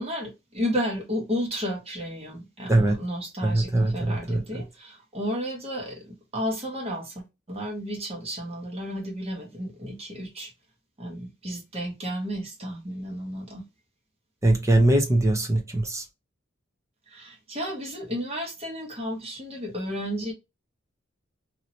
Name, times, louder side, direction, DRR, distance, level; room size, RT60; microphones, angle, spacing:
voice 1, 0.0-10.5 11.0-13.6 17.1-20.3, equal, 30° right, 1.2 m, -32 dB
voice 2, 3.4-4.4 14.4-16.0, right 1 dB, 15° right, 0.8 m, -21 dB
2.9 x 2.8 x 2.7 m
head